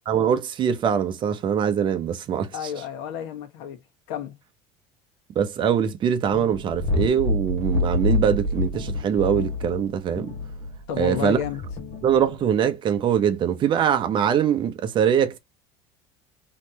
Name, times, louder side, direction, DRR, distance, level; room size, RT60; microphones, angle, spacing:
voice 1, 0.1-2.5 5.3-10.3 11.0-11.4 12.0-15.4, right 8 dB, 35° right, 0.9 m, -22 dB
voice 2, 2.5-3.8 4.1-4.4 10.9-11.6, left 9 dB, 80° left, 1.4 m, -31 dB
sound 1, 6.3-12.5, left 2 dB, 45° left, 1.8 m, -28 dB
4.1 x 3.2 x 2.8 m
cardioid pair, 150°, 14 cm